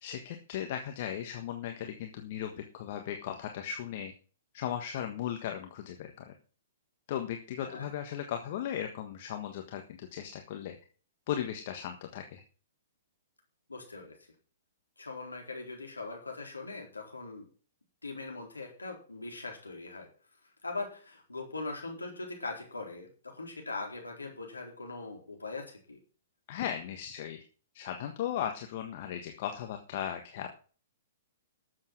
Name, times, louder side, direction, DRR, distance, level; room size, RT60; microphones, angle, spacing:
voice 1, 0.0-4.1 4.5-6.3 7.1-10.8 11.3-12.4 26.5-27.4 27.7-30.5, left 10 dB, 50° left, 5 dB, 1.4 m, -37 dB
voice 2, 13.7-14.2 15.0-17.4 18.0-20.1 20.6-26.0, left 3 dB, 85° left, 1 dB, 4.2 m, -41 dB
12.5 x 7.6 x 6.1 m, 0.40 s
figure-of-eight pair, 115°, 0 cm